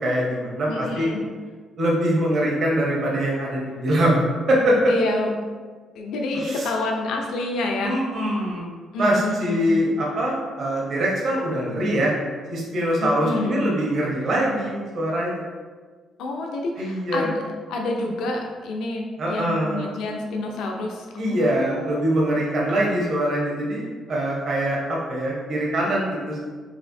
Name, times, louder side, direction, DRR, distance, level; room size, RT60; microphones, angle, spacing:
voice 1, 0.0-1.1 1.8-4.2 4.5-4.8 6.3-6.7 7.8-12.1 12.5-15.5 16.8-17.3 19.2-20.0 21.2-26.4, right 1 dB, 60° right, -4 dB, 0.9 m, -23 dB
voice 2, 0.7-1.2 4.9-5.3 5.9-8.0 8.9-9.8 13.0-13.7 16.2-17.4 17.7-21.9, left 2 dB, 85° left, 1 dB, 0.5 m, -28 dB
4.1 x 2.6 x 2.6 m, 1.5 s
cardioid pair, 90°, 0 cm